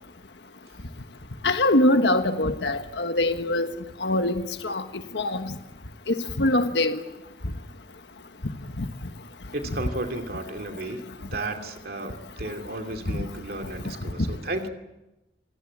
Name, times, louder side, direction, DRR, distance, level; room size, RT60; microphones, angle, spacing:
voice 1, 1.4-3.7 4.0-5.5 6.1-7.0 8.8-8.9 13.1-13.2, left 1 dB, 80° left, 7 dB, 1.4 m, -23 dB
voice 2, 9.5-14.7, right 2 dB, 60° right, 5 dB, 2.6 m, -33 dB
28.0 x 17.0 x 8.7 m, 0.99 s
head